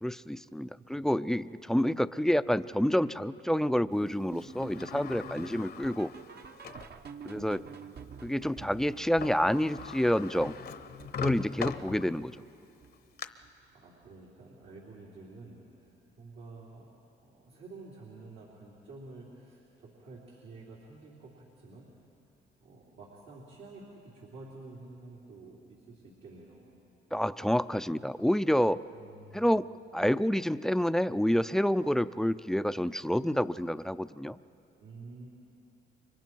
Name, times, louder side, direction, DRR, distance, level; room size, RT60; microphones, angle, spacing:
voice 1, 0.0-6.1 7.2-7.6 8.2-10.5 11.2-12.4 27.1-28.8 29.3-29.7 29.9-34.4, equal, ahead, 13 dB, 0.4 m, -28 dB
voice 2, 0.7-1.1 5.3-5.7 7.2-7.9 13.5-16.9 17.2-21.9 22.6-26.6 28.9-29.6 34.8-35.3, right 3 dB, 85° right, -5 dB, 3.4 m, -50 dB
sound 1, 4.0-13.1 13.4-13.7 14.0-14.1 14.6-14.7 15.2-15.3, right 6 dB, 55° right, 1.0 m, -49 dB
Sliding door, 4.3-6.9 7.5-7.6 8.9-9.0 9.2-12.4 12.8-13.3, left 7 dB, 55° left, 0.9 m, -40 dB
30.0 x 24.0 x 4.6 m, 2.6 s
cardioid pair, 90°, 20 cm